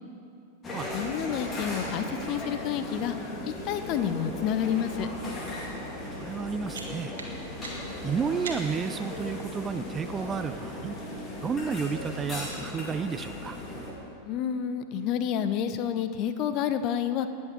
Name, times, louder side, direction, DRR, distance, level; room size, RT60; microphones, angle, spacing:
sound 1, 0.6-13.9, left 1 dB, 20° left, 2.4 m, -37 dB
voice 1, 0.9-3.2 3.4-5.1 14.2-17.3, left 9 dB, 40° left, 10 dB, 0.7 m, -29 dB
voice 2, 6.2-7.2 8.0-11.0 11.4-13.6, right 6 dB, 20° right, 11 dB, 0.4 m, -31 dB
sound 2, 6.3-9.0, right 3 dB, 65° right, 1.6 m, -42 dB
19.5 x 7.3 x 4.6 m, 2.5 s
figure-of-eight pair, 90°, 0 cm